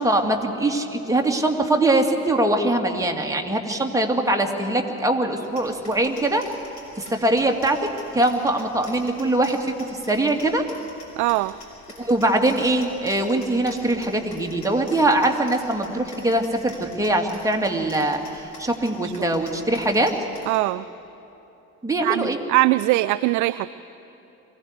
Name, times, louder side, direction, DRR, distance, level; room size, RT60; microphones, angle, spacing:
voice 1, 0.0-6.4 7.0-10.6 12.0-20.1 21.8-22.4, right 1 dB, 10° right, 2 dB, 2.3 m, -22 dB
sound 1, 5.4-20.6, left 2 dB, 40° left, 6.1 m, -47 dB
voice 2, 11.2-11.5 19.0-19.3 20.5-20.8 22.0-23.7, right 19 dB, 45° right, 16 dB, 0.4 m, -21 dB
23.5 x 16.0 x 8.2 m, 2.9 s
figure-of-eight pair, 55°, 42 cm